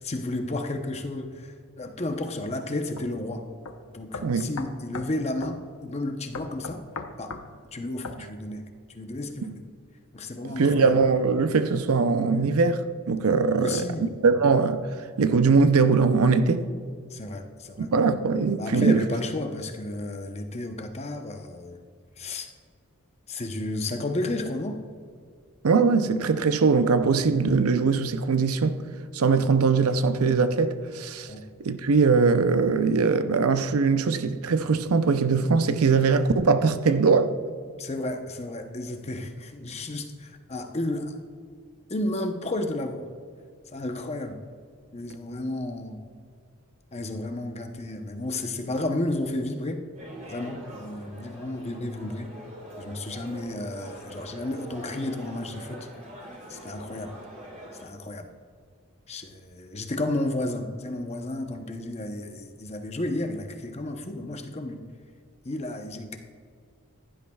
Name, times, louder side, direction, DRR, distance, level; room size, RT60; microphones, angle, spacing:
voice 1, 0.0-3.5 3.9-6.8 7.2-7.3 7.7-8.7 8.9-9.6 10.1-11.0 13.6-14.1 17.1-17.9 18.6-21.8 22.2-22.5 23.3-24.8 31.3-31.4 37.8-41.2 41.9-43.1 43.7-44.4 44.9-46.0 46.9-49.8 50.3-52.3 52.8-55.9 56.5-57.2 57.8-58.3 59.1-64.8 65.4-66.2, left 2 dB, 30° left, 0.8 m, -32 dB
sound 1, 3.0-3.1 3.7-3.8 4.1-5.1 5.4-5.6 6.3-7.5 8.0-8.2, left 4 dB, 80° left, 0.8 m, -37 dB
voice 2, 10.4-14.9 15.2-16.7 17.8-19.0 25.6-28.8 29.1-31.3 31.6-37.3, right 4 dB, 80° right, 0.6 m, -21 dB
sound 2, 49.9-57.8, equal, 35° right, 3.2 m, -43 dB
15.5 x 11.5 x 2.3 m
head